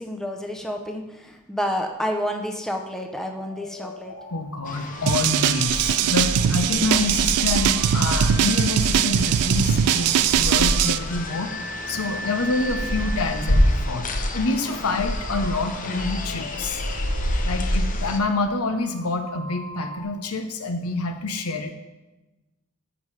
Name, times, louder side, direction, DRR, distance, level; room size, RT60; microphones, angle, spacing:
voice 1, 0.0-4.1, equal, ahead, 2 dB, 0.6 m, -29 dB
sound 1, 2.9-20.0, right 1 dB, 50° left, 2.0 m, -41 dB
voice 2, 4.3-11.5 11.9-14.1 14.3-16.8 17.4-21.7, left 3 dB, 75° left, 6 dB, 0.8 m, -27 dB
sound 2, 4.7-18.2, left 1 dB, 35° left, 0.8 m, -27 dB
sound 3, 5.1-11.0, right 10 dB, 80° right, 0.3 m, -21 dB
13.5 x 5.1 x 3.3 m, 1.1 s
head